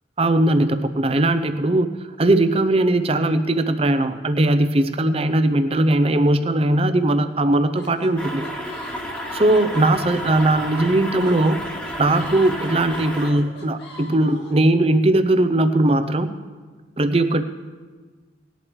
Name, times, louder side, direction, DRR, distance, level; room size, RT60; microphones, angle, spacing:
voice 1, 0.2-1.9 2.2-8.5 9.3-11.6 12.0-16.3 17.0-17.4, right 1 dB, 30° right, 9 dB, 0.5 m, -19 dB
sound 1, 7.8-14.6, left 1 dB, 65° left, 2.2 m, -40 dB
sound 2, 8.2-13.3, equal, 5° left, 1.2 m, -31 dB
19.0 x 11.0 x 3.1 m, 1.4 s
head